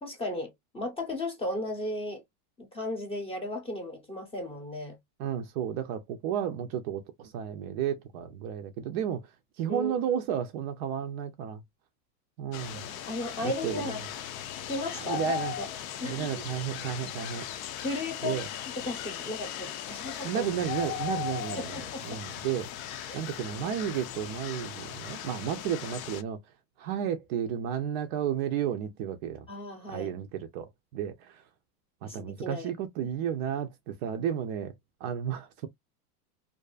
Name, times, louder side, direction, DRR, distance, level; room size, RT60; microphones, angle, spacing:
voice 1, 0.0-2.2 2.6-5.0 9.7-9.9 12.7-14.0 14.7-15.2 15.6-15.7 16.0-16.3 17.8-18.4 18.8-20.5 21.6-22.2 23.1-23.8 29.5-30.1 32.0-32.7, left 1 dB, 10° left, 0.7 m, -35 dB
voice 2, 5.2-9.3 9.6-11.6 12.4-12.9 13.4-13.9 15.0-15.5 16.0-17.5 18.2-18.5 20.2-22.7 23.1-26.4 26.8-29.5 29.9-31.4 32.0-34.7 35.0-35.7, right 9 dB, 45° right, 0.4 m, -32 dB
sound 1, 12.5-26.2, left 11 dB, 60° left, 0.6 m, -38 dB
2.6 x 2.3 x 2.3 m
supercardioid pair, 135°, 48 cm